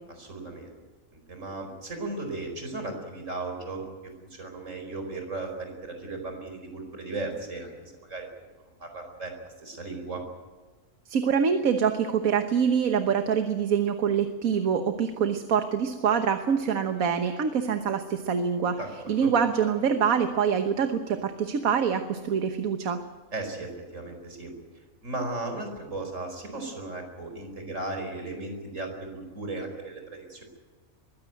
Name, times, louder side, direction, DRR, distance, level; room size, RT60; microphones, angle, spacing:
voice 1, 0.1-0.8 1.1-3.8 4.3-8.3 8.8-10.2 18.8-19.3 23.3-24.5 25.0-30.4, right 2 dB, 55° right, 4 dB, 5.1 m, -36 dB
voice 2, 11.1-18.8 19.1-23.0, right 7 dB, 70° right, 7 dB, 1.6 m, -25 dB
22.5 x 16.0 x 9.1 m, 1.3 s
omnidirectional pair, 1.5 m